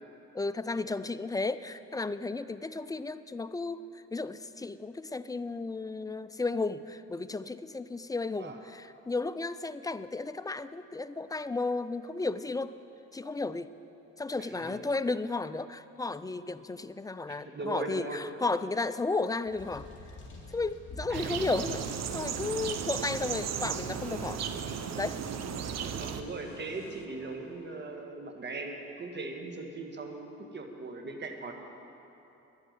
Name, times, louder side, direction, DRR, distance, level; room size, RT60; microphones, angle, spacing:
voice 1, 0.3-12.8 13.1-13.7 14.2-19.9 20.5-24.5 25.0-25.2, left 3 dB, 10° left, 13 dB, 0.3 m, -33 dB
voice 2, 14.4-14.7 17.3-18.2 21.1-21.4 26.0-31.5, right 3 dB, 35° right, 3 dB, 1.6 m, -39 dB
sound 1, 19.5-24.0, left 1 dB, 40° left, 2.7 m, -48 dB
sound 2, 21.1-26.2, right 8 dB, 60° right, 0.8 m, -35 dB
sound 3, 21.6-28.0, left 6 dB, 70° left, 1.3 m, -50 dB
11.0 x 8.2 x 9.4 m, 3.0 s
cardioid pair, 90°, 30 cm